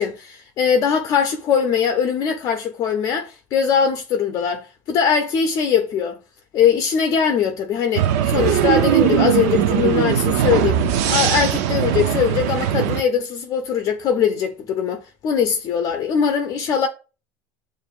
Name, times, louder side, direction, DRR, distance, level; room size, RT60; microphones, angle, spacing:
voice 1, 0.0-6.2 6.5-16.9, left 7 dB, 45° left, 0.5 m, -21 dB
sound 1, 7.9-13.0, right 10 dB, 75° right, 0.5 m, -19 dB
6.8 x 2.5 x 2.4 m
supercardioid pair, 120°, 8 cm